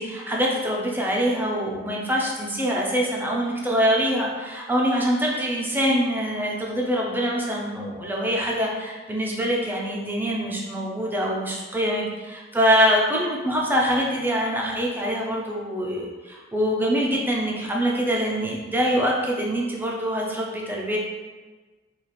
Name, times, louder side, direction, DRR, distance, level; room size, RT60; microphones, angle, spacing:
voice 1, 0.0-21.0, equal, 10° right, -2 dB, 0.5 m, -24 dB
4.0 x 2.4 x 3.2 m, 1.3 s
head